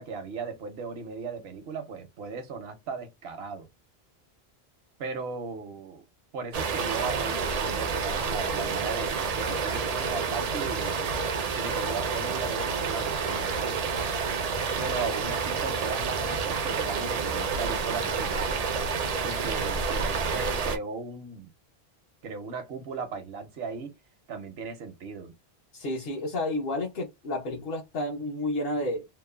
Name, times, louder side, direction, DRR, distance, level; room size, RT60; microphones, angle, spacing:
voice 1, 0.0-3.7 5.0-6.0 6.3-11.2 11.5-13.8 14.8-18.6 19.2-21.5 22.2-23.9 24.3-25.3, right 4 dB, 75° right, 0.9 m, -37 dB
sound 1, 6.5-20.8, right 5 dB, 55° right, 0.4 m, -29 dB
voice 2, 25.7-29.0, left 1 dB, 65° left, 0.9 m, -31 dB
3.0 x 2.0 x 2.2 m
omnidirectional pair, 1.1 m